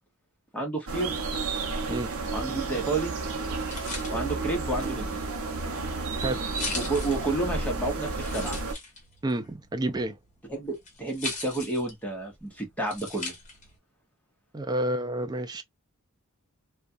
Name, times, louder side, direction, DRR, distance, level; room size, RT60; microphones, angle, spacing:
voice 1, 0.5-1.1 2.3-3.1 4.1-5.2 6.7-8.6 10.5-13.3, right 2 dB, 5° left, 0.9 m, -30 dB
sound 1, 0.9-8.7, right 3 dB, 70° right, 0.7 m, -32 dB
sound 2, 3.3-13.8, left 3 dB, 35° left, 1.1 m, -41 dB
voice 2, 9.2-10.2 14.5-15.6, right 1 dB, 20° right, 0.4 m, -29 dB
2.4 x 2.3 x 2.5 m
head